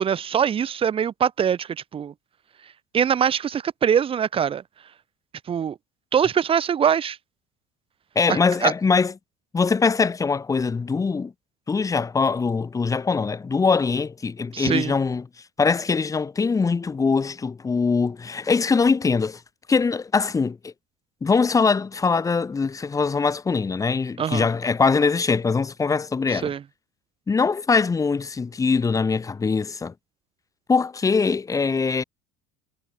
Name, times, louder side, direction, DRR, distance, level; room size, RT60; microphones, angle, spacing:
voice 1, 0.0-2.1 2.9-4.6 5.5-5.8 6.1-7.2 8.3-8.7 14.5-14.9 24.2-24.5 26.3-26.6, right 8 dB, 35° right, 5.3 m, -23 dB
voice 2, 8.2-9.1 9.5-11.3 11.7-15.2 15.6-19.4 19.7-20.7 21.2-26.5 27.3-29.9 30.7-32.0, left 4 dB, 20° left, 2.4 m, -22 dB
supercardioid pair, 95°, 15 cm